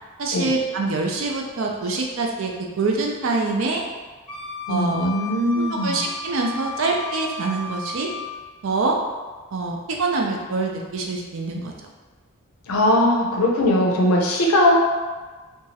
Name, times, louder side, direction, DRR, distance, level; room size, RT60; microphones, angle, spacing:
voice 1, 0.2-2.5 2.8-3.8 4.7-5.1 5.5-8.1 8.6-9.0 9.5-11.7, right 3 dB, 60° right, 0 dB, 0.4 m, -25 dB
Wind instrument woodwind instrument, 4.3-8.3, left 4 dB, 25° left, 0.5 m, -34 dB
voice 2, 4.7-6.0 12.7-14.8, left 1 dB, 80° left, -1 dB, 0.5 m, -20 dB
2.9 x 2.3 x 2.7 m, 1.3 s
head